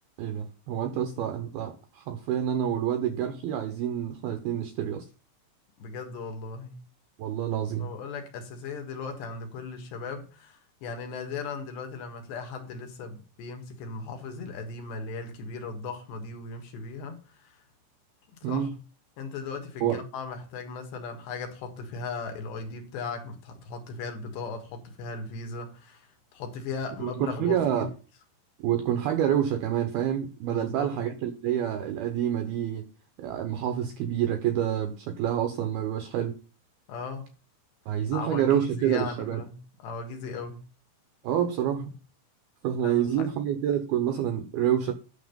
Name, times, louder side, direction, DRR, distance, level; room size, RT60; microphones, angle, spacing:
voice 1, 0.2-5.1 7.2-7.9 18.4-18.8 19.8-20.0 27.0-27.9 28.6-32.9 33.2-36.4 37.9-39.4 41.2-41.9 42.6-44.9, right 10 dB, 90° right, 2.2 m, -28 dB
voice 2, 5.8-6.9 7.8-17.6 18.4-18.7 19.2-27.9 30.5-31.0 36.9-37.3 38.1-40.7 42.8-43.3, left 4 dB, 65° left, 3.3 m, -37 dB
9.9 x 6.3 x 5.2 m
omnidirectional pair, 5.7 m